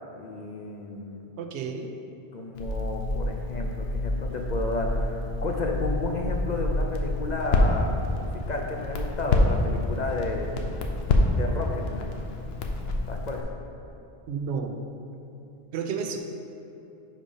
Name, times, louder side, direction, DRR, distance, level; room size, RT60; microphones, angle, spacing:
voice 1, 0.2-1.3 2.3-10.5 11.3-12.1 13.1-13.4, left 2 dB, 55° left, 1 dB, 0.6 m, -32 dB
voice 2, 1.4-2.0 14.3-14.7 15.7-16.2, right 6 dB, 85° right, 5 dB, 0.9 m, -31 dB
Crackle, 2.5-13.4, left 2 dB, 70° left, 0.9 m, -27 dB
5.2 x 5.0 x 5.4 m, 2.8 s
omnidirectional pair, 1.1 m